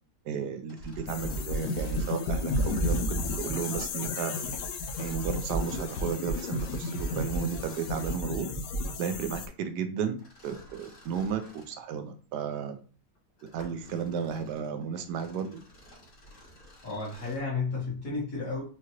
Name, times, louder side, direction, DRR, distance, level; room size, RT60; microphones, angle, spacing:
voice 1, 0.2-4.6 5.0-8.5 9.0-10.2 10.4-12.8 13.5-15.6, right 7 dB, 80° right, 8 dB, 1.2 m, -33 dB
Mechanisms, 0.7-8.3 10.2-11.8 12.4-12.5 13.1-17.5, left 1 dB, 50° left, 2.2 m, -51 dB
sound 1, 1.1-9.5, left 1 dB, 85° left, 1.3 m, -32 dB
voice 2, 16.8-18.6, left 4 dB, 65° left, -8 dB, 2.0 m, -32 dB
4.8 x 3.0 x 2.8 m, 0.40 s
omnidirectional pair, 1.8 m